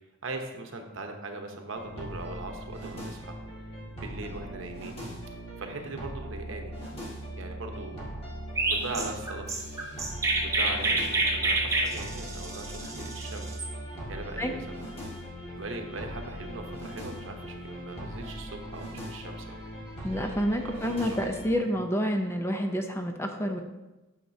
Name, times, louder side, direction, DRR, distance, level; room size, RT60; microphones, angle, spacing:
voice 1, 0.2-3.4 4.0-5.0 5.6-6.7 7.4-8.1 8.7-9.5 10.4-13.6 14.1-14.9 15.5-19.6 20.6-21.2, right 2 dB, 65° right, 4 dB, 0.9 m, -40 dB
sound 1, 1.7-21.6, equal, 30° left, 1.9 m, -40 dB
Chirp tweet, 8.6-13.7, right 2 dB, 15° right, 0.7 m, -28 dB
voice 2, 20.0-23.6, equal, 10° left, 4 dB, 0.5 m, -28 dB
8.9 x 6.5 x 2.7 m, 1.1 s
head